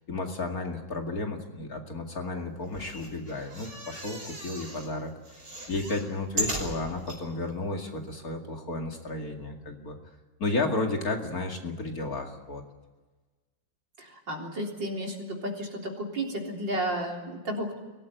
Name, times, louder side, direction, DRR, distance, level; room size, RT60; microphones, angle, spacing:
voice 1, 0.1-5.1 5.7-10.0 10.4-12.6, left 2 dB, 50° left, 3 dB, 2.7 m, -32 dB
sound 1, 2.6-4.9 5.2-7.2 7.8-7.9 8.1-8.2, right 1 dB, 55° right, 6.3 m, -36 dB
voice 2, 14.0-17.8, right 1 dB, 75° right, 0 dB, 4.4 m, -33 dB
24.0 x 18.0 x 9.3 m, 1.2 s
omnidirectional pair, 2.0 m